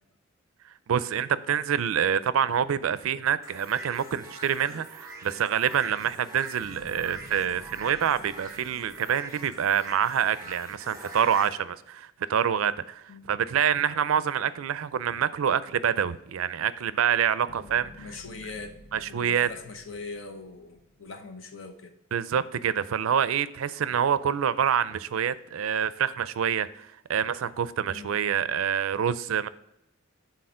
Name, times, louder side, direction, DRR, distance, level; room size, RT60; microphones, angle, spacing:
voice 1, 0.9-18.1 18.9-19.5 22.1-29.5, right 8 dB, 80° right, 0.4 m, -26 dB
sound 1, 3.4-11.5, right 3 dB, 15° right, 1.0 m, -44 dB
sound 2, 6.6-10.9 17.5-21.2, left 1 dB, 85° left, 1.3 m, -52 dB
voice 2, 18.0-18.7 19.1-21.9 27.9-28.2, left 3 dB, 65° left, 0.8 m, -41 dB
6.4 x 4.0 x 5.5 m
head